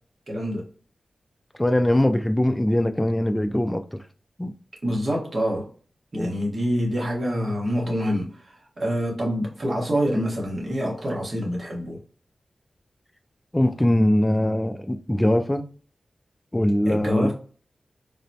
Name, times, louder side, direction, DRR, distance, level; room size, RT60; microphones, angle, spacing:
voice 1, 0.3-0.6 4.8-5.7 6.1-12.0 16.8-17.3, equal, 55° right, 1.2 m, -26 dB
voice 2, 1.6-4.0 4.4-4.5 6.1-6.3 13.5-15.6 16.5-17.3, left 1 dB, 15° left, 0.3 m, -22 dB
3.9 x 2.1 x 2.7 m
cardioid pair, 60°, 0 cm